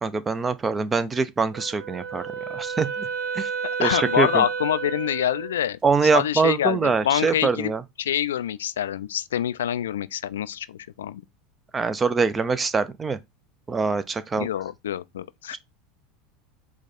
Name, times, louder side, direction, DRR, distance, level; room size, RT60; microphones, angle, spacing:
voice 1, 0.0-2.2 2.5-3.1 3.3-3.5 3.8-4.4 5.8-7.8 11.7-13.2 13.7-14.5 15.5-15.6, right 4 dB, 25° right, 0.6 m, -24 dB
Wind instrument woodwind instrument, 1.5-5.6, right 6 dB, 65° right, 1.1 m, -31 dB
voice 2, 3.8-5.8 6.1-7.7 8.0-11.2 14.4-15.6, left 10 dB, 80° left, 0.3 m, -26 dB
4.8 x 2.3 x 4.2 m
hypercardioid pair, 85°, 0 cm